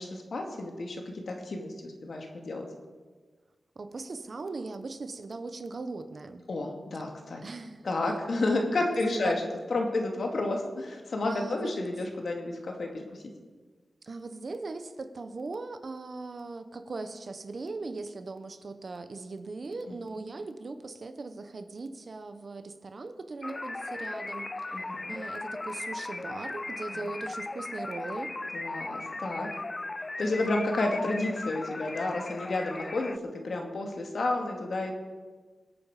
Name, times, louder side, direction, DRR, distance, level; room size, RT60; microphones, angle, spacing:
voice 1, 0.0-2.7 6.5-7.4 7.8-9.4 9.7-13.2 19.9-20.0 24.7-25.2 26.9-27.1 28.5-29.5 30.2-34.9, left 2 dB, 70° left, 2 dB, 2.4 m, -31 dB
voice 2, 3.8-6.4 7.4-7.9 8.8-9.4 11.3-11.7 14.0-24.5 25.1-28.3, right 3 dB, 55° right, 9 dB, 1.1 m, -39 dB
sound 1, 23.4-33.2, left 2 dB, 30° left, 0.4 m, -37 dB
22.5 x 8.7 x 5.0 m, 1.4 s
wide cardioid pair, 85°, 0 cm